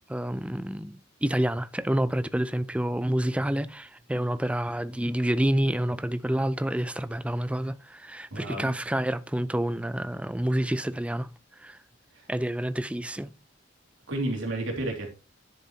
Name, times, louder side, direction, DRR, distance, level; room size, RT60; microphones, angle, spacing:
voice 1, 0.1-11.3 11.6-11.8 12.3-13.3, right 1 dB, 5° right, 0.4 m, -28 dB
voice 2, 8.3-8.7 12.1-12.3 14.1-15.2, right 1 dB, 70° right, 3.2 m, -31 dB
10.0 x 7.8 x 2.8 m
head